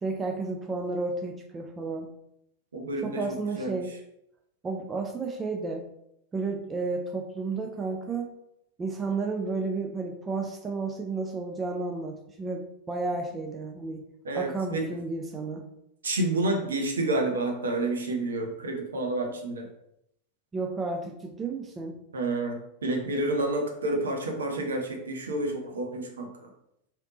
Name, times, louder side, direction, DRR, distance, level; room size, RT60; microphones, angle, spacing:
voice 1, 0.0-2.1 3.0-3.9 4.6-5.9 6.3-8.3 8.8-14.1 14.3-15.7 20.5-22.0, right 3 dB, 20° right, 3 dB, 0.5 m, -32 dB
voice 2, 2.7-3.2 3.6-3.8 14.2-14.9 16.0-19.7 22.1-26.5, right 2 dB, 70° right, 2 dB, 0.7 m, -29 dB
3.4 x 2.8 x 3.8 m, 0.78 s
figure-of-eight pair, 90°, 0 cm